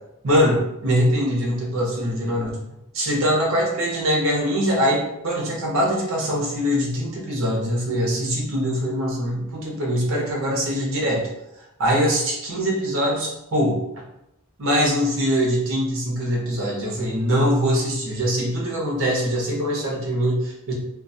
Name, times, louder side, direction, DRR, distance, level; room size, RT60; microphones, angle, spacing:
voice 1, 0.2-2.6 2.9-11.3 11.8-13.8 14.6-20.7, equal, 75° right, -2 dB, 0.7 m, -22 dB
2.3 x 2.3 x 2.6 m, 0.87 s
head